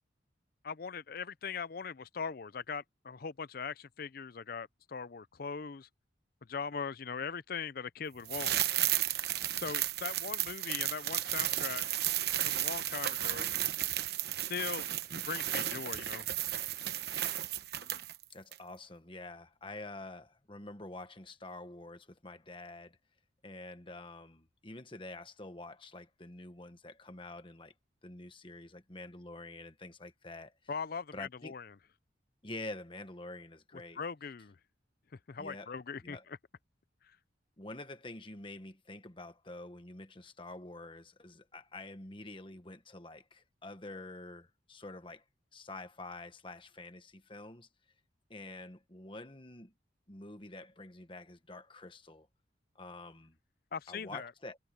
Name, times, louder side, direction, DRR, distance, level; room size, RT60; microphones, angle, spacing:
voice 1, 0.6-5.9 6.5-8.5 9.6-11.8 12.4-13.5 14.5-14.9 15.3-16.3 30.7-31.7 34.0-34.6 35.3-36.4 53.7-54.3, left 6 dB, 50° left, 0.5 m, -40 dB
sound 1, 8.3-18.2 18.5-18.6, right 12 dB, 55° right, 1.0 m, -33 dB
voice 2, 18.3-23.0 23.4-27.7 28.0-30.5 31.1-31.5 32.4-34.0 35.4-35.7 36.0-36.2 37.6-45.2 45.5-47.7 48.3-49.7 50.1-52.3 52.7-53.4 53.9-54.6, left 2 dB, 25° left, 1.3 m, -47 dB
head